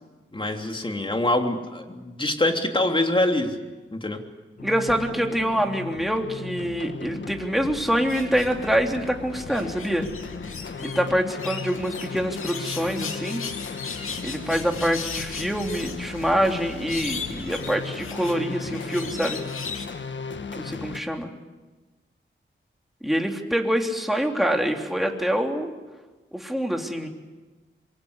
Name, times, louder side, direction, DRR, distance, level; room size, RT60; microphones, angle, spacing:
voice 1, 0.3-3.6 3.9-4.2, left 1 dB, 25° left, 3 dB, 3.3 m, -24 dB
sound 1, 4.6-21.0, left 5 dB, 65° left, 1.5 m, -36 dB
voice 2, 4.6-10.1 10.8-13.4 14.2-19.4 20.6-21.3 23.0-25.7 26.3-27.1, equal, ahead, 2 dB, 3.2 m, -25 dB
sound 2, 8.1-8.8 9.3-11.0 11.4-19.9, left 5 dB, 85° left, 2.6 m, -37 dB
26.0 x 23.0 x 8.2 m, 1.2 s
wide cardioid pair, 95°, 21 cm